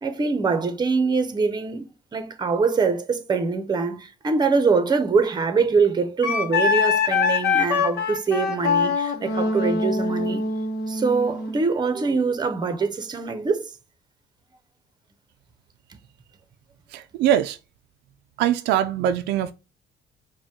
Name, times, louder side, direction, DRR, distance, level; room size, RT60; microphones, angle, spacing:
voice 1, 0.0-1.8 2.1-10.4 10.9-13.7, right 4 dB, 25° right, 0.8 m, -23 dB
Wind instrument woodwind instrument, 6.2-11.6, left 5 dB, 75° left, 1.0 m, -23 dB
voice 2, 16.9-17.6 18.4-19.5, right 10 dB, 85° right, 0.4 m, -22 dB
5.0 x 2.2 x 3.6 m
cardioid pair, 110°, 17 cm